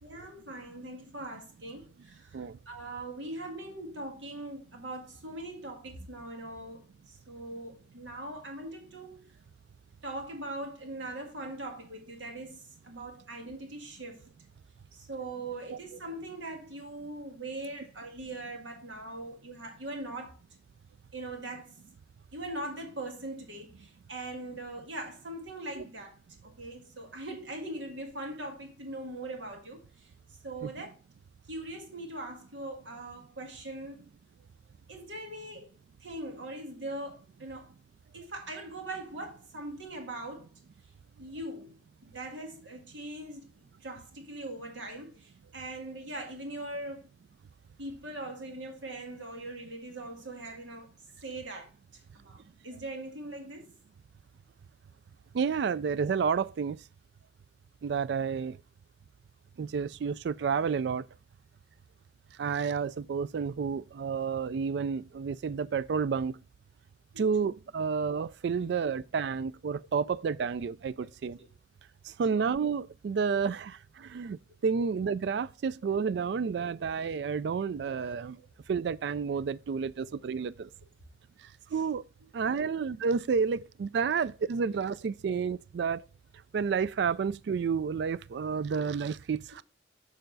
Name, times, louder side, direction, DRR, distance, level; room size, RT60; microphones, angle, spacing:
voice 1, 0.0-9.3 10.0-14.2 14.9-20.4 21.1-21.7 22.3-26.2 26.4-30.1 30.4-30.9 31.5-34.1 34.9-35.7 36.0-37.7 38.1-40.5 41.2-41.8 42.0-43.5 43.8-47.1 47.8-50.9 51.2-51.7 52.1-53.7 67.1-67.3 71.0-71.1 71.4-71.5 72.2-72.5 78.4-78.5 81.7-81.8 82.2-82.3 82.6-82.7, right 2 dB, 80° right, 1.9 m, -41 dB
voice 2, 55.3-56.8 57.8-58.6 59.6-61.0 62.4-66.4 67.2-71.4 72.1-74.4 74.6-78.4 78.7-80.7 81.7-82.0 82.3-86.0 86.5-89.6, right 6 dB, 60° right, 0.3 m, -30 dB
6.9 x 6.4 x 3.9 m
head